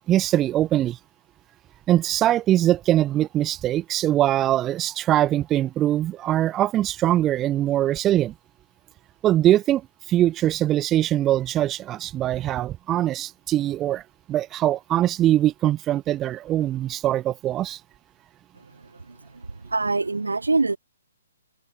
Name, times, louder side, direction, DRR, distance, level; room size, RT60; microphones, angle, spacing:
voice 1, 0.1-1.0 1.9-8.3 9.2-9.8 10.1-14.0 14.3-17.8, right 13 dB, 20° right, 1.7 m, -22 dB
voice 2, 19.1-20.8, right 3 dB, 90° right, 4.9 m, -25 dB
open air
figure-of-eight pair, 135°, 0 cm